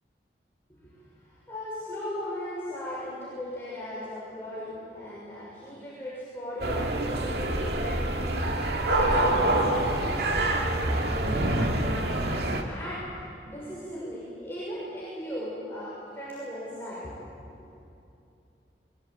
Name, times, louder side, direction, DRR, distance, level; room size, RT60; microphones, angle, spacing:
voice 1, 1.2-8.2 8.6-12.3 12.7-13.0 13.4-17.4, left 1 dB, 15° left, -9 dB, 6.3 m, -37 dB
sound 1, 6.6-12.6, right 1 dB, 65° right, 2.3 m, -26 dB
23.0 x 22.0 x 8.8 m, 2.7 s
head